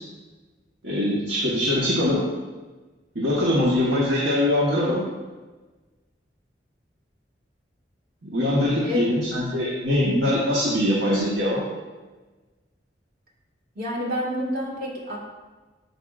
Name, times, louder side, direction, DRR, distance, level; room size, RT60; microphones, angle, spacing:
voice 1, 0.8-2.2 3.1-5.0 8.2-11.6, left 1 dB, 75° right, -6 dB, 1.5 m, -22 dB
voice 2, 13.8-15.2, left 1 dB, 55° right, -2 dB, 2.1 m, -28 dB
13.5 x 5.4 x 2.6 m, 1.3 s
head